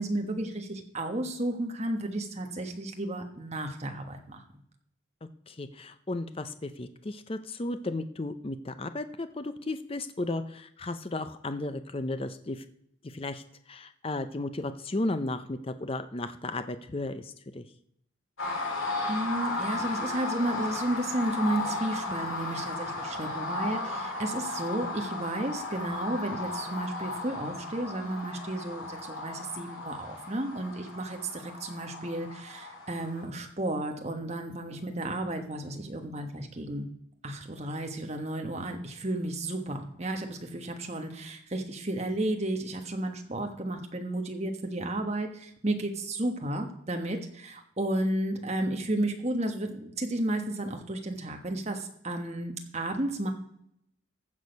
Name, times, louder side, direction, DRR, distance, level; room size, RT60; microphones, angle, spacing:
voice 1, 0.0-4.4 19.1-36.9 37.2-53.3, right 1 dB, 30° right, 4 dB, 1.3 m, -33 dB
voice 2, 5.5-12.7 13.0-13.4 13.7-17.6, left 2 dB, 25° left, 10 dB, 0.5 m, -34 dB
sound 1, 18.4-33.2, left 2 dB, 80° left, 3.1 m, -35 dB
15.0 x 6.4 x 5.3 m, 0.73 s
head